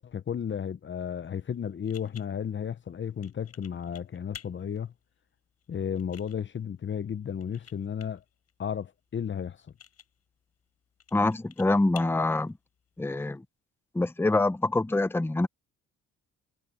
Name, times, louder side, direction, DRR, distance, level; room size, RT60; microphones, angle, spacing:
voice 1, 0.0-4.9 5.7-8.2 8.6-9.6, left 8 dB, 40° left, 0.9 m, -33 dB
sound 1, 1.2-13.3, left 9 dB, 55° left, 5.9 m, -54 dB
voice 2, 11.1-12.5 13.0-13.4 13.9-15.5, left 2 dB, 5° left, 0.8 m, -25 dB
cardioid pair, 90°, 30 cm